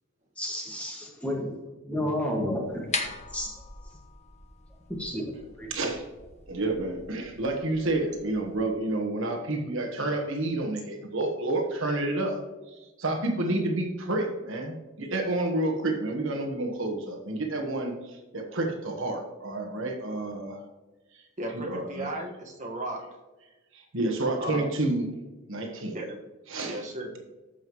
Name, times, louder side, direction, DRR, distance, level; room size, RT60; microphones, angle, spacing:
voice 1, 0.4-1.5 1.8-2.9 3.3-3.5 5.0-5.3 5.6-5.7, left 1 dB, 5° left, -1 dB, 1.8 m, -31 dB
sound 1, 2.6-8.6, left 4 dB, 30° left, 1.0 m, -40 dB
voice 2, 5.7-6.0 6.5-12.4 12.7-20.6 21.6-22.1 23.7-25.1 25.5-26.0 26.5-26.8, right 2 dB, 65° right, 3 dB, 1.3 m, -29 dB
voice 3, 21.4-23.0 24.4-24.7 25.9-26.2 26.6-27.2, right 1 dB, 35° right, 0 dB, 1.5 m, -35 dB
14.0 x 5.5 x 3.1 m, 1.1 s
head